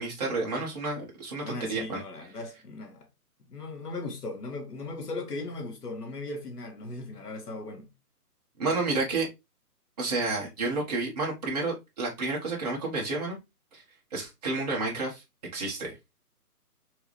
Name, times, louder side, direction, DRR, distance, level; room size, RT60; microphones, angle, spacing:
voice 1, 0.0-2.0 8.6-9.3 10.0-13.4 13.7-13.8 14.1-15.2 15.5-15.9, right 3 dB, 25° right, 1.3 m, -30 dB
voice 2, 1.4-3.1 3.4-7.9, left 2 dB, 80° left, 1.9 m, -38 dB
4.6 x 3.1 x 3.2 m
hypercardioid pair, 165°, 47 cm